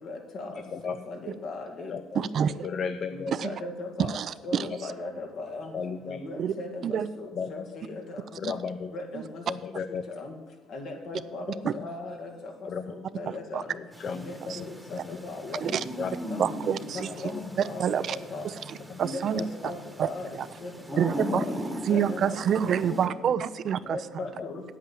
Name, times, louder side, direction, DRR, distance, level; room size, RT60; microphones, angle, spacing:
voice 1, 0.0-0.5 0.8-2.6 3.1-4.2 4.4-5.7 6.1-8.2 8.9-9.4 10.2-10.4 10.7-11.5 11.7-12.5 12.9-13.7 14.1-15.6 16.3-16.4 16.8-17.3 17.6-18.5 19.0-19.8 20.0-20.3 20.6-21.3 21.9-23.0 23.9-24.6, left 2 dB, 65° left, 3 dB, 2.1 m, -38 dB
voice 2, 0.6-1.0 1.9-2.2 2.6-3.4 4.7-4.8 5.7-6.2 7.3-7.8 8.4-8.9 9.5-10.0 11.5-11.9 12.7-12.8 13.7-14.6 14.9-15.3 16.0-16.3 17.1-17.4 18.9-19.0 19.4-19.5 21.3-21.6 23.8-24.0 24.4-24.5, left 6 dB, 50° left, 9 dB, 0.6 m, -35 dB
voice 3, 2.1-2.7 3.3-3.5 4.0-4.7 6.4-6.5 6.8-7.1 8.4-8.5 9.1-9.2 11.6-11.7 13.3-13.6 14.5-14.6 15.6-15.8 16.4-17.1 17.6-18.2 18.7-19.4 20.0-20.5 21.0-24.0, right 8 dB, 55° right, 15 dB, 0.4 m, -28 dB
sound 1, 13.9-23.1, equal, 5° right, 1.3 m, -38 dB
9.1 x 8.4 x 7.1 m, 1.3 s
cardioid pair, 110°, 0 cm